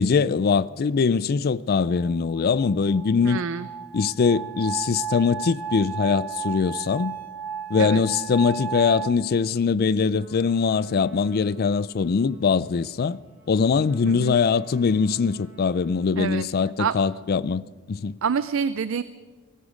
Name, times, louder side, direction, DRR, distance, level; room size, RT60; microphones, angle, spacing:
voice 1, 0.0-3.4 3.9-7.2 7.7-13.2 13.5-18.2, left 5 dB, 50° left, 0.4 m, -22 dB
sound 1, 2.0-9.1, right 7 dB, 90° right, 1.9 m, -34 dB
voice 2, 3.2-3.7 7.8-8.0 14.1-14.3 16.2-16.5 16.8-16.9 18.2-19.0, right 6 dB, 70° right, 0.4 m, -26 dB
Trumpet, 10.1-16.4, left 1 dB, 40° right, 6.7 m, -55 dB
18.5 x 15.5 x 5.1 m
head